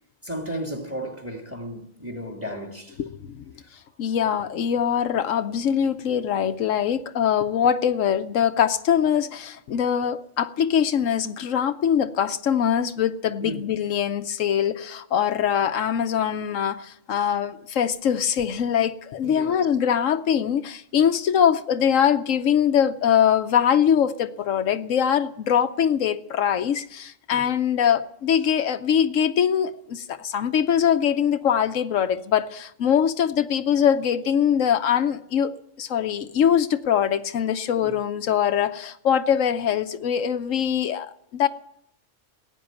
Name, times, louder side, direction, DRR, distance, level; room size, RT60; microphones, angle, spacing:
voice 1, 0.2-3.0 13.4-13.6 19.2-19.6 27.3-27.5 37.8-38.0, right 1 dB, 10° right, 2.3 m, -34 dB
voice 2, 3.0-3.4 4.0-41.5, left 8 dB, 85° left, 1.2 m, -22 dB
15.5 x 9.6 x 9.1 m
omnidirectional pair, 1.3 m